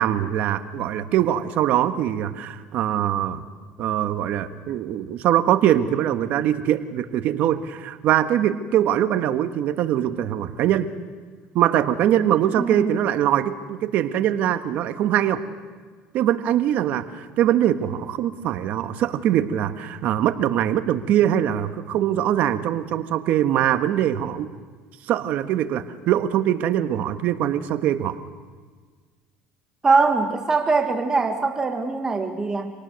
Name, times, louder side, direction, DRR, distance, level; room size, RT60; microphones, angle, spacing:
voice 1, 0.0-3.4 3.8-10.9 11.5-15.4 16.1-24.5 25.1-28.1, right 11 dB, 60° right, 9 dB, 1.5 m, -22 dB
voice 2, 12.5-12.9 29.8-32.7, right 4 dB, 20° right, 5 dB, 1.8 m, -22 dB
26.5 x 18.5 x 6.6 m, 1.5 s
supercardioid pair, 105°, 3 cm